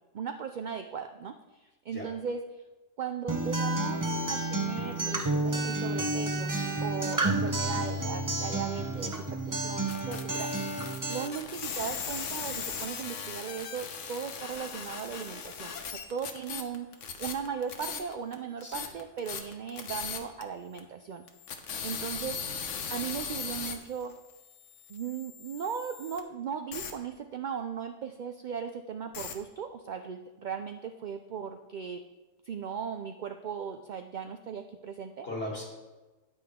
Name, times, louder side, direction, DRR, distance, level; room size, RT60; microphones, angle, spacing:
voice 1, 0.1-2.6 3.0-6.6 6.8-10.7 11.1-15.7 16.1-16.9 17.2-21.2 21.8-22.4 22.9-24.1 24.9-32.0 32.4-35.3, right 7 dB, 65° right, 7 dB, 0.4 m, -37 dB
Acoustic guitar, 3.3-11.3, right 2 dB, 20° right, 0.6 m, -30 dB
sound 1, 9.9-18.3 18.6-20.4 20.8-20.9 21.3-26.2 26.7-26.9 29.1-29.3, left 6 dB, 70° left, 1.2 m, -38 dB
voice 2, 18.6-18.9 22.2-22.5 35.2-35.7, left 1 dB, 50° left, -3 dB, 2.9 m, -39 dB
9.6 x 9.3 x 3.6 m, 1.1 s
omnidirectional pair, 1.3 m